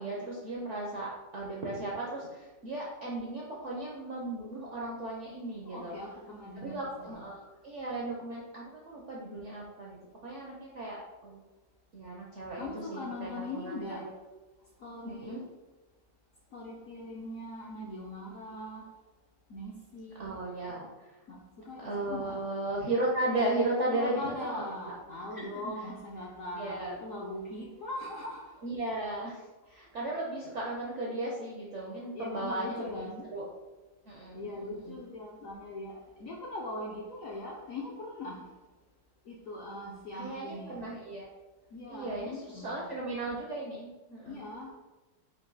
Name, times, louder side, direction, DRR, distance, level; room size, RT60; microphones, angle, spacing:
voice 1, 0.0-6.0 6.6-11.4 11.9-14.0 15.0-15.4 20.2-20.9 21.8-24.6 25.3-25.5 26.5-27.0 28.6-29.4 29.7-33.5 34.1-35.0 40.1-41.3 41.9-44.4, right 2 dB, 65° right, -3 dB, 0.7 m, -36 dB
voice 2, 5.7-7.3 12.6-14.1 14.8-15.3 16.5-18.9 19.5-20.3 21.3-22.4 23.9-28.5 32.1-33.3 34.3-38.5 39.3-40.9 41.7-42.9 44.3-44.7, left 1 dB, 70° left, -3 dB, 0.8 m, -41 dB
5.1 x 2.6 x 3.9 m, 1.2 s
omnidirectional pair, 2.0 m